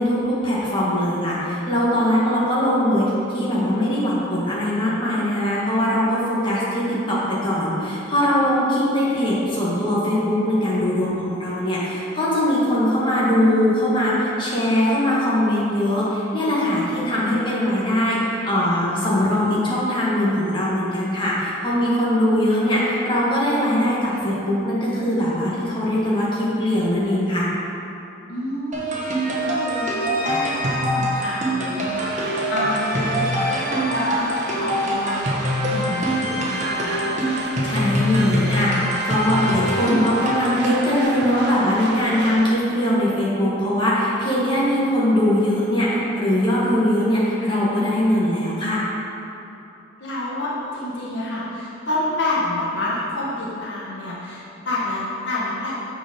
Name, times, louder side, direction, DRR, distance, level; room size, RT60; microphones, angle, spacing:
voice 1, 0.0-27.5 37.6-48.8, left 1 dB, 25° left, -8 dB, 1.7 m, -21 dB
voice 2, 28.3-29.9 30.2-37.2 50.0-55.8, left 2 dB, 65° left, -6 dB, 1.4 m, -28 dB
sound 1, 28.7-41.0, equal, 40° right, 1.3 m, -24 dB
sound 2, 31.9-42.5, right 3 dB, 55° right, 0.7 m, -33 dB
7.1 x 5.0 x 6.4 m, 2.9 s
head